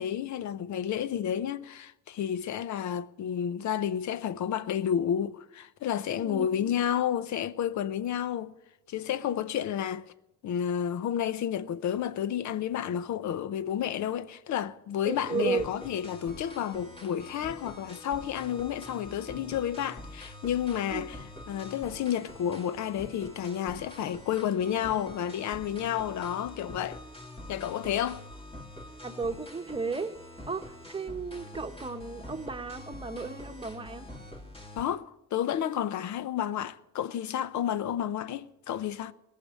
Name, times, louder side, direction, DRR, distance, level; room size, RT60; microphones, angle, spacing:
voice 1, 0.0-8.6 8.9-10.0 10.4-27.0 27.5-28.3 34.8-39.1, left 9 dB, 70° left, 0.8 m, -31 dB
voice 2, 15.0-15.6 20.9-21.1 29.0-30.1 30.5-34.1, right 4 dB, 15° right, 1.1 m, -34 dB
sound 1, 15.2-34.8, left 1 dB, 20° left, 2.6 m, -46 dB
17.5 x 6.8 x 9.7 m
cardioid pair, 90°, 30 cm